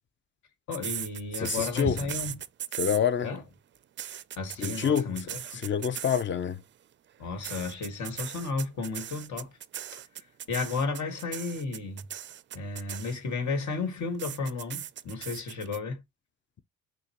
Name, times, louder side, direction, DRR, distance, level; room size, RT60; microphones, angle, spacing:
voice 1, 0.7-2.4 3.2-3.4 4.4-5.6 7.2-9.5 10.5-12.0 12.5-16.0, left 4 dB, 70° left, 1.8 m, -33 dB
sound 1, 0.7-3.4 3.8-6.4 7.4-13.4 14.2-15.8, right 10 dB, 40° right, 0.4 m, -38 dB
voice 2, 1.4-2.0 2.8-3.3 4.6-5.1 5.5-6.6, left 7 dB, 40° left, 0.6 m, -27 dB
6.3 x 2.3 x 2.9 m
cardioid pair, 90°, 30 cm